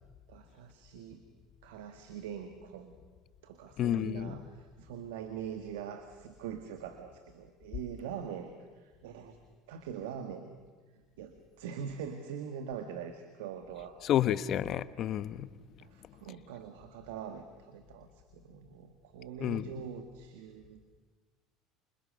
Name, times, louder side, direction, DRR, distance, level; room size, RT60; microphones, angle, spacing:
voice 1, 0.3-1.2 1.6-3.0 3.4-9.4 9.7-10.5 10.9-14.0 15.8-20.8, right 8 dB, 85° right, 8 dB, 2.0 m, -43 dB
voice 2, 3.8-4.4 14.0-15.5 19.4-19.6, left 11 dB, 50° left, 15 dB, 1.1 m, -30 dB
29.5 x 26.5 x 6.7 m, 1.4 s
supercardioid pair, 95°, 0 cm